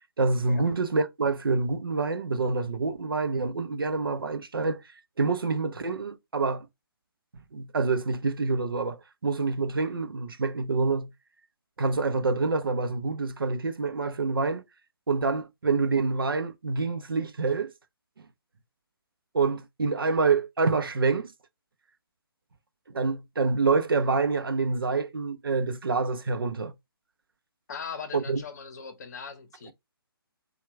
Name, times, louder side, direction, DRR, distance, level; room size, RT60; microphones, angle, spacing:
voice 1, 0.2-4.8 5.2-6.7 7.5-11.1 11.8-14.6 15.1-17.7 19.3-21.3 22.9-26.7 28.1-28.4, right 4 dB, 65° right, 0.6 m, -27 dB
voice 2, 27.7-29.7, left 6 dB, 45° left, 0.8 m, -40 dB
4.4 x 2.3 x 3.2 m
figure-of-eight pair, 140°, 13 cm